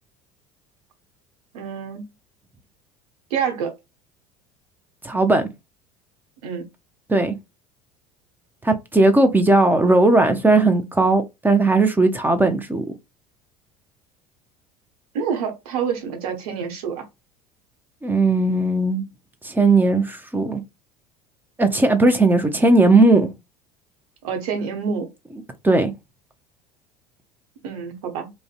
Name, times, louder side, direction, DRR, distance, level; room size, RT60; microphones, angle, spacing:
voice 1, 1.5-2.1 3.3-3.7 6.4-6.7 15.1-17.0 24.2-25.1 27.6-28.3, right 6 dB, 70° right, 0.9 m, -27 dB
voice 2, 5.0-5.5 7.1-7.3 8.6-12.8 18.0-19.0 19.4-20.6 21.6-23.3 25.6-25.9, right 2 dB, 10° right, 0.5 m, -17 dB
2.5 x 2.1 x 2.4 m
figure-of-eight pair, 70°, 20 cm